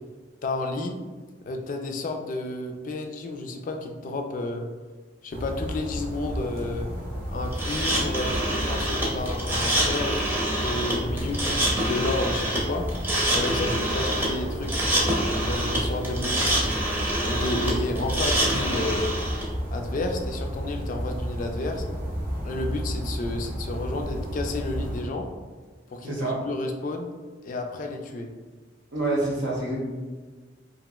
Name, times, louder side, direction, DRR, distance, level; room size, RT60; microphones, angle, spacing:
voice 1, 0.4-1.0 1.5-4.7 5.2-6.9 7.3-12.9 13.3-14.7 15.3-16.5 17.2-19.2 19.7-21.8 22.4-25.3 25.9-27.1 27.4-28.3, left 2 dB, 45° left, 3 dB, 0.3 m, -31 dB
sound 1, 5.3-25.0, equal, 55° right, 0.6 m, -32 dB
sound 2, 7.5-19.4, right 1 dB, 10° right, 0.6 m, -26 dB
voice 2, 26.0-26.5 28.9-29.8, right 2 dB, 90° right, -3 dB, 0.8 m, -27 dB
2.9 x 2.6 x 2.2 m, 1.4 s
head